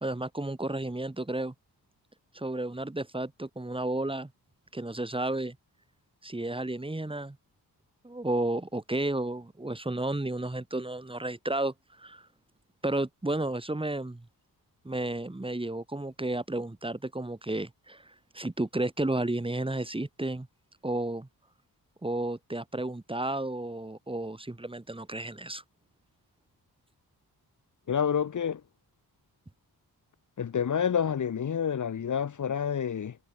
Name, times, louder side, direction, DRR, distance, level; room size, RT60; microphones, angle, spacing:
voice 1, 0.0-1.5 2.3-4.3 4.7-5.6 6.2-7.4 8.0-11.7 12.0-12.2 12.8-14.2 14.8-18.0 18.3-20.5 20.8-21.3 22.0-25.6, right 2 dB, 15° right, 3.7 m, -32 dB
voice 2, 27.9-28.6 30.4-33.2, left 7 dB, 50° left, 1.2 m, -28 dB
cardioid pair, 85°, 37 cm